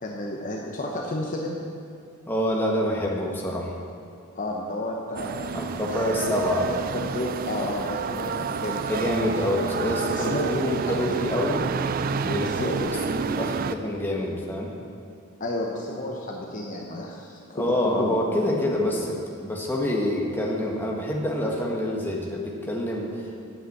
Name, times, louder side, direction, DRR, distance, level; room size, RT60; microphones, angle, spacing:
voice 1, 0.0-1.6 4.3-5.6 5.9-6.5 6.9-9.1 10.1-11.2 12.4-12.9 15.4-18.2, left 1 dB, 35° left, 0 dB, 0.8 m, -31 dB
voice 2, 2.3-3.8 5.5-6.8 8.9-11.6 12.2-12.7 13.1-14.7 17.5-23.3, left 1 dB, 10° left, -2 dB, 1.3 m, -27 dB
sound 1, 5.2-13.8, right 5 dB, 40° right, 0.3 m, -29 dB
8.7 x 8.0 x 7.9 m, 2.4 s
head